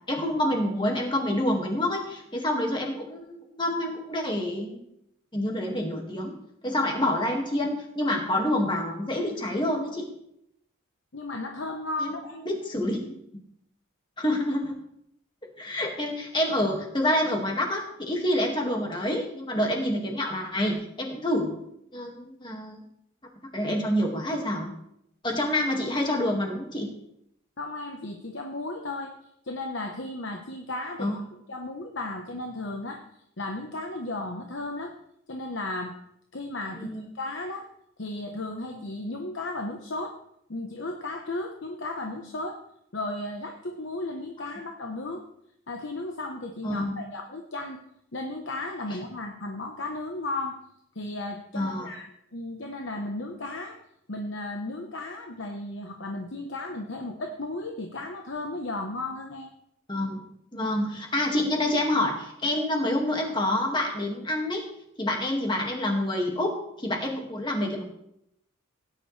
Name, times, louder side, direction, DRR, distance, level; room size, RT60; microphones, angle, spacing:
voice 1, 0.1-4.8 5.3-6.3 6.6-10.1 12.0-13.2 14.2-14.7 15.6-21.6 21.9-22.8 23.5-24.7 25.2-26.9 31.0-31.1 36.7-37.0 46.6-47.0 51.5-51.9 59.9-60.2 60.5-64.6 65.0-67.8, left 1 dB, 20° left, 1 dB, 1.9 m, -27 dB
voice 2, 11.1-12.4 27.6-29.1 29.4-31.2 31.5-33.0 33.4-34.9 35.3-35.9 36.3-36.9 37.1-37.6 38.0-40.1 40.5-42.6 42.9-45.2 45.7-47.8 48.1-50.6 50.9-52.0 52.3-53.8 54.1-59.5, left 2 dB, 60° left, 3 dB, 1.0 m, -34 dB
17.0 x 9.8 x 3.3 m, 0.77 s
head